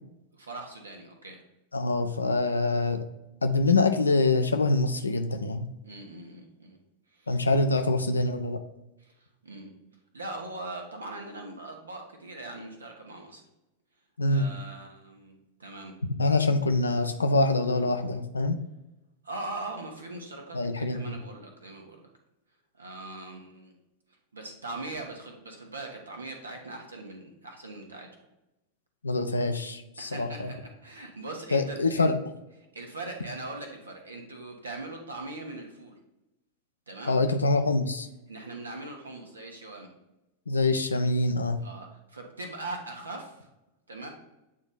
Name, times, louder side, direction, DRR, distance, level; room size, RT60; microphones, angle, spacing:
voice 1, 0.3-1.4 5.8-6.8 7.1-7.3 9.0-9.7 10.1-13.4 14.3-15.9 19.2-22.1 22.7-23.7 24.3-28.1 30.0-32.1 32.7-36.0 36.9-37.1 38.3-39.9 41.6-43.5 43.9-44.1, right 2 dB, 75° right, 2 dB, 1.2 m, -41 dB
voice 2, 1.7-3.0 3.4-5.7 7.3-8.6 14.2-14.5 16.2-18.6 20.5-21.1 29.0-30.5 31.5-32.2 37.1-38.1 40.5-41.6, left 2 dB, 75° left, 6 dB, 0.5 m, -25 dB
8.5 x 2.9 x 3.9 m, 0.93 s
figure-of-eight pair, 90°, 0 cm